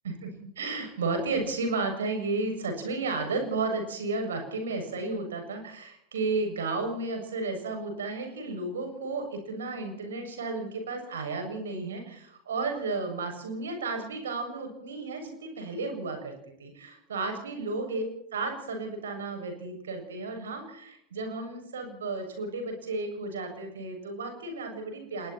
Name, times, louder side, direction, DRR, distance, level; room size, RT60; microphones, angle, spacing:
voice 1, 0.0-16.3 16.6-18.0 18.3-25.3, right 3 dB, 65° right, 5 dB, 7.2 m, -33 dB
29.5 x 21.0 x 4.5 m, 0.73 s
figure-of-eight pair, 90°, 0 cm